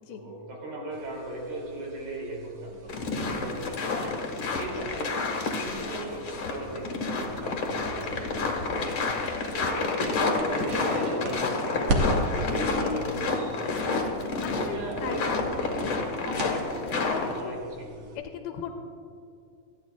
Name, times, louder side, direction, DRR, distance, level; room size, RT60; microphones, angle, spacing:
voice 1, 0.1-4.2 4.5-9.2 9.5-13.4 14.0-15.8 16.2-18.0, right 1 dB, 80° right, -3 dB, 4.9 m, -38 dB
sound 1, 0.9-18.2, equal, 60° right, 1.7 m, -38 dB
sound 2, 2.9-17.4, left 3 dB, 55° left, 1.6 m, -29 dB
voice 2, 8.7-9.0 12.6-13.0 14.2-15.4 16.4-16.6 17.1-17.9 18.1-18.7, left 8 dB, 90° left, 4 dB, 2.6 m, -38 dB
sound 3, 9.9-17.3, left 1 dB, 40° right, 2.8 m, -42 dB
28.5 x 9.9 x 2.4 m, 2.4 s
omnidirectional pair, 4.3 m